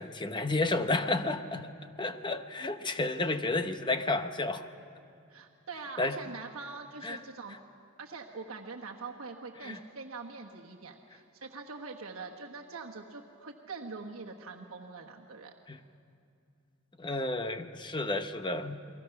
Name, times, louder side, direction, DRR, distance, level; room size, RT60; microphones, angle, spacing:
voice 1, 0.0-1.7 2.0-4.7 6.0-6.2 7.0-7.2 7.5-7.6 9.6-9.8 15.7-15.8 17.0-18.8, left 2 dB, 20° left, 8 dB, 0.8 m, -31 dB
voice 2, 5.3-7.6 8.0-15.5, right 4 dB, 85° right, 0 dB, 1.3 m, -43 dB
30.0 x 22.0 x 5.9 m, 2.4 s
head